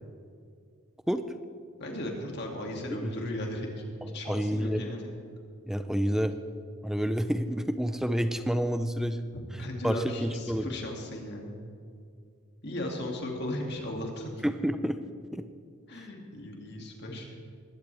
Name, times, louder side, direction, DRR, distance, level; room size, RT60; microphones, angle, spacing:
voice 1, 1.8-3.7 4.1-5.1 9.5-11.6 12.6-14.3 15.9-17.3, left 1 dB, 50° left, 0 dB, 2.5 m, -36 dB
voice 2, 4.0-5.0 5.7-6.4 6.8-9.2 9.5-10.7 14.4-15.0 15.3-15.4, equal, ahead, 9 dB, 0.5 m, -29 dB
20.5 x 16.0 x 3.5 m, 2.3 s
head